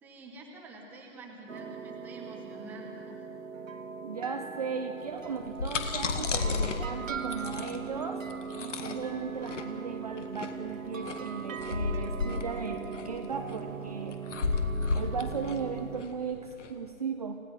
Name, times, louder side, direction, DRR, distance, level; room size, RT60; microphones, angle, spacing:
voice 1, 0.0-3.3, right 2 dB, 5° right, 0 dB, 1.0 m, -47 dB
sound 1, 1.5-16.0, right 6 dB, 65° right, 1.4 m, -40 dB
voice 2, 4.0-8.2 8.5-14.1 14.9-17.4, right 5 dB, 30° right, 4 dB, 0.6 m, -36 dB
sound 2, 5.3-16.7, left 4 dB, 55° left, 1.9 m, -33 dB
29.0 x 16.5 x 5.9 m, 2.7 s
hypercardioid pair, 155°, 42 cm